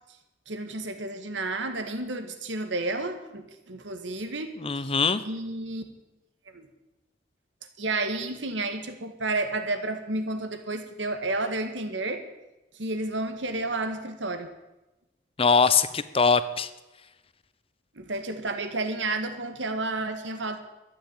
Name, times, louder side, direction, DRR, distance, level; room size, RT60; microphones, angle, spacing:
voice 1, 0.5-4.9 5.2-5.8 6.5-6.7 7.8-12.2 12.7-14.5 18.0-20.6, right 2 dB, 90° right, 8 dB, 1.8 m, -31 dB
voice 2, 4.6-5.2 15.4-16.7, left 5 dB, 30° left, 14 dB, 0.8 m, -22 dB
12.5 x 9.6 x 8.9 m, 1.0 s
head